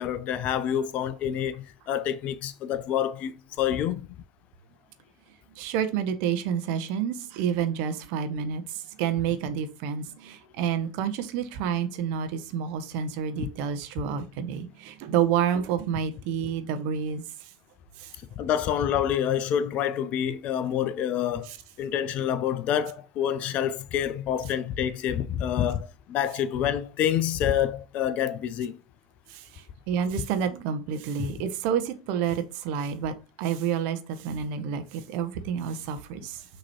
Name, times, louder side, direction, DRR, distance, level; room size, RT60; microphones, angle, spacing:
voice 1, 0.0-4.1 13.4-13.5 18.4-21.5 21.8-28.8, left 9 dB, 45° left, 0.5 m, -27 dB
voice 2, 5.5-17.5 18.0-18.1 21.5-21.6 29.3-36.5, right 8 dB, 55° right, 0.7 m, -29 dB
6.0 x 3.0 x 2.9 m
figure-of-eight pair, 80°, 3 cm